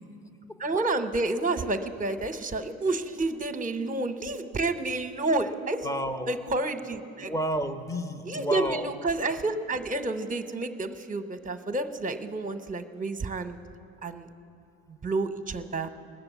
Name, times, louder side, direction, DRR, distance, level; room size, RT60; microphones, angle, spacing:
voice 1, 0.6-5.9 6.3-7.3 8.2-13.6 14.0-14.3 14.9-15.9, right 2 dB, 20° right, 9 dB, 0.9 m, -30 dB
voice 2, 5.8-6.3 7.2-8.9, right 1 dB, 10° left, 8 dB, 0.8 m, -31 dB
19.0 x 6.8 x 8.1 m, 2.7 s
hypercardioid pair, 70°, 40 cm